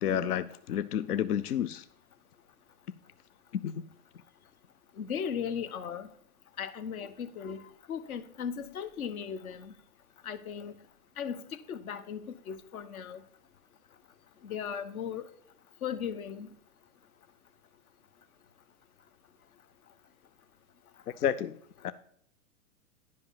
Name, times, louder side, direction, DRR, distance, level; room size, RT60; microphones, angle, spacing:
voice 1, 0.0-1.8 3.6-3.7 21.2-21.5 21.8-21.9, left 9 dB, 85° left, 0.6 m, -30 dB
voice 2, 5.0-6.1 6.6-7.6 7.9-9.7 10.2-10.8 11.2-13.2 14.4-15.3 15.8-16.5, left 7 dB, 70° left, 1.1 m, -37 dB
10.5 x 5.3 x 5.6 m
hypercardioid pair, 125°, 44 cm